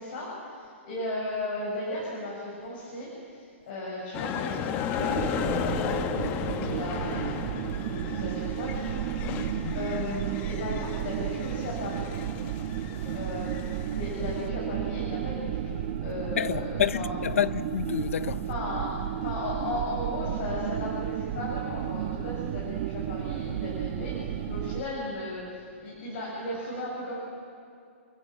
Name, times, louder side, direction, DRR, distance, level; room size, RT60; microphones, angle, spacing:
voice 1, 0.0-6.1 6.5-12.1 13.1-17.2 18.4-27.2, left 1 dB, 50° left, 6.8 m, -36 dB
sound 1, 4.1-14.5, left 8 dB, 25° left, 0.9 m, -35 dB
sound 2, 5.0-24.8, right 11 dB, 45° right, 1.1 m, -33 dB
voice 2, 16.4-18.5, left 9 dB, 80° left, 0.6 m, -29 dB
28.5 x 15.5 x 7.4 m
hypercardioid pair, 160°, 7 cm